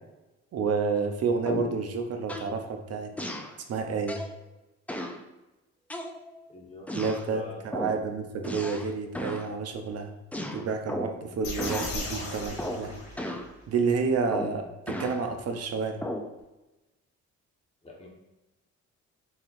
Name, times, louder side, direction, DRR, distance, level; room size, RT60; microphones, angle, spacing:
voice 1, 0.5-3.1 3.7-4.2 7.0-10.1 10.5-13.0 13.7-16.1, right 5 dB, 55° right, 5 dB, 0.6 m, -29 dB
sound 1, 1.4-1.8 2.3-2.6 3.2-3.5 4.1-4.4 4.9-5.2 5.9-6.4 6.9-7.3 7.7-8.0 8.4-8.9 9.1-9.5 10.3-11.2 11.6-12.0 12.6-12.9 13.2-13.5 14.3-15.2 16.0-16.3, left 1 dB, 5° left, 0.4 m, -35 dB
voice 2, 6.5-7.6 17.8-18.1, left 3 dB, 20° left, -2 dB, 1.2 m, -44 dB
sound 2, 11.4-13.6, left 2 dB, 80° left, 1.4 m, -37 dB
4.1 x 3.9 x 2.5 m, 1.0 s
cardioid pair, 85°, 29 cm